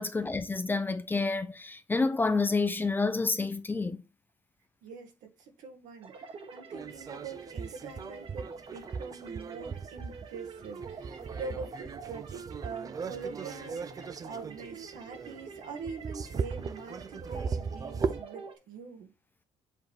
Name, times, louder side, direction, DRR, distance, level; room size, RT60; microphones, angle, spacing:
voice 1, 0.0-4.0, left 3 dB, 15° left, 0.6 m, -29 dB
voice 2, 4.8-19.1, right 5 dB, 85° right, 1.9 m, -44 dB
sound 1, 6.0-18.6, right 4 dB, 45° right, 1.3 m, -47 dB
sound 2, 6.7-18.2, right 5 dB, 30° right, 0.5 m, -38 dB
8.0 x 3.5 x 4.5 m
cardioid pair, 130°, 13 cm